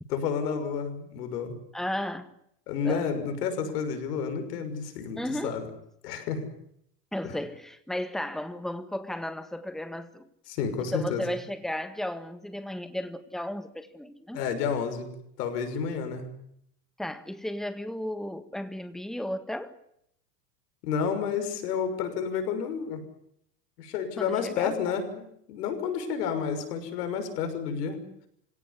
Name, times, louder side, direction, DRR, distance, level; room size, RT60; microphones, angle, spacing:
voice 1, 0.1-1.5 2.7-5.6 6.0-6.5 7.2-7.3 10.5-11.2 14.3-15.1 15.4-16.3 20.8-23.0 23.8-25.2 25.5-28.0, left 6 dB, 70° left, 6.3 m, -30 dB
voice 2, 1.7-2.3 2.8-3.1 5.2-5.6 7.1-10.3 10.9-14.4 17.0-19.8 24.2-24.7, left 1 dB, ahead, 1.7 m, -34 dB
26.5 x 17.0 x 10.0 m
supercardioid pair, 120°, 48 cm